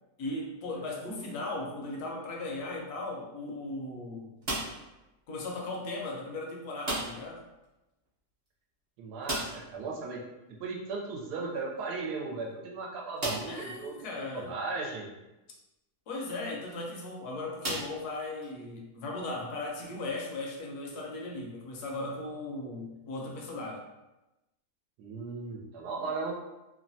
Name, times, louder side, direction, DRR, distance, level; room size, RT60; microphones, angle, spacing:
voice 1, 0.2-4.3 5.3-7.4 13.5-14.6 16.1-23.8, left 2 dB, 75° left, -1 dB, 1.1 m, -37 dB
sound 1, 4.4-5.0 6.8-7.4 7.6-7.7 8.1-8.2 9.2-9.8 11.5-11.6 12.3-12.4 13.2-13.7 14.4-14.5 16.5-16.7 17.6-18.5, right 1 dB, 40° right, 0.6 m, -35 dB
voice 2, 9.0-10.2 10.6-14.0 14.3-15.1 25.0-26.3, right 4 dB, 75° right, -1 dB, 1.1 m, -36 dB
3.0 x 2.1 x 2.6 m, 1.0 s
omnidirectional pair, 1.8 m